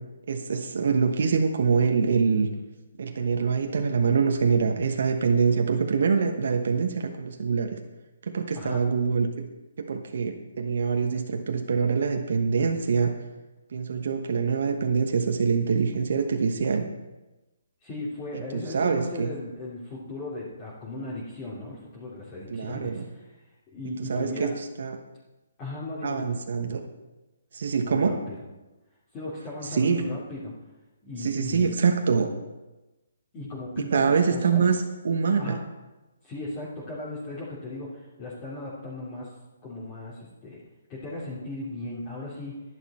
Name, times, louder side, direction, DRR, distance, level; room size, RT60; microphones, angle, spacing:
voice 1, 0.3-2.5 3.0-7.8 8.3-9.3 9.8-13.1 13.7-16.9 18.5-19.3 22.5-23.0 24.1-24.5 24.8-25.0 26.0-26.8 27.5-28.1 29.7-30.0 31.2-32.3 33.8-35.6, right 5 dB, 60° right, 4 dB, 1.2 m, -24 dB
voice 2, 8.5-8.9 17.8-23.4 23.7-24.5 25.6-26.4 27.8-28.4 29.1-30.5 31.0-31.8 33.3-34.6 35.4-35.6 36.2-39.3 39.6-40.6 40.9-42.6, left 2 dB, 25° left, -9 dB, 3.1 m, -37 dB
11.5 x 10.5 x 4.4 m, 1.1 s
figure-of-eight pair, 140°, 0 cm